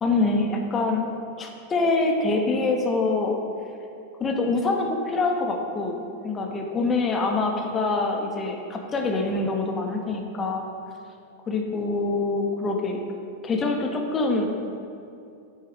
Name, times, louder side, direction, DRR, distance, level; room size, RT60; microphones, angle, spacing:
voice 1, 0.0-1.1 1.4-3.4 4.2-10.6 11.5-13.0 13.4-14.5, left 3 dB, 20° left, 2 dB, 0.8 m, -25 dB
5.9 x 4.7 x 4.9 m, 2.5 s
figure-of-eight pair, 90°, 0 cm